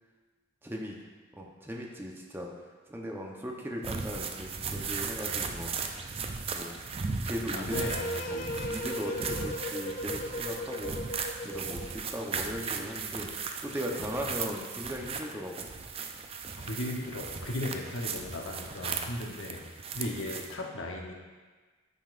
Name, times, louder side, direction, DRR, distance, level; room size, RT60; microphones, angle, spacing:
voice 1, 0.6-1.0 1.3-2.5 2.9-5.7 6.5-6.7 7.2-7.8 8.3-11.0 11.4-13.3 13.6-15.7, equal, 10° right, -1 dB, 0.8 m, -38 dB
sound 1, 3.8-20.5, right 5 dB, 30° right, 0.4 m, -37 dB
voice 2, 7.5-8.5 16.6-19.7 19.9-21.1, left 1 dB, 80° left, 1 dB, 0.9 m, -36 dB
sound 2, 7.7-12.0, left 1 dB, 40° left, 0.4 m, -36 dB
9.2 x 5.3 x 2.5 m, 1.3 s
head